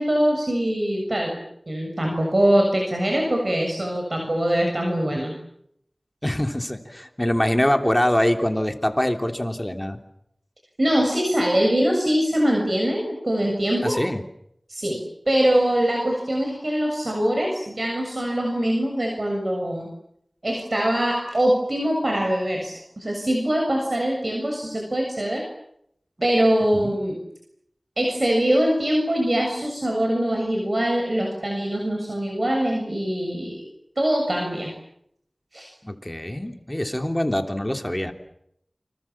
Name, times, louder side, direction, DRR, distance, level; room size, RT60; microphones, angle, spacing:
voice 1, 0.0-1.4 1.7-5.3 10.8-14.0 14.7-15.0 15.3-19.9 20.4-25.4 26.2-27.2 28.0-33.6 34.0-34.7 35.5-35.7, right 1 dB, 55° right, 1 dB, 7.3 m, -23 dB
voice 2, 6.2-10.0 13.8-14.2 26.7-27.0 35.8-38.1, left 1 dB, 20° left, 5 dB, 3.3 m, -24 dB
29.0 x 26.0 x 7.4 m, 0.75 s
wide cardioid pair, 50°, 0 cm